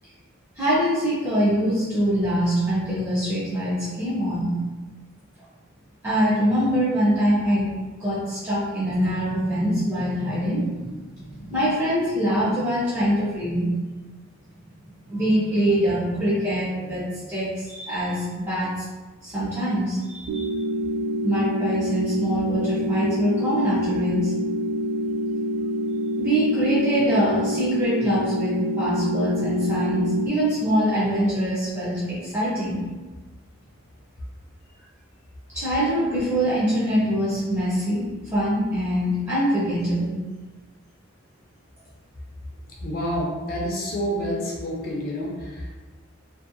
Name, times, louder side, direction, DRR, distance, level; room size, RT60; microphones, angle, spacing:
voice 1, 0.6-4.5 6.0-7.7 8.0-13.7 15.1-18.9 19.2-20.6 21.2-24.3 26.2-32.8 35.5-40.2, equal, 15° right, -9 dB, 0.5 m, -24 dB
sound 1, 20.3-30.3, equal, 85° right, 0.3 m, -26 dB
voice 2, 42.8-45.7, equal, 45° left, -3 dB, 0.5 m, -28 dB
2.6 x 2.1 x 2.5 m, 1.2 s
head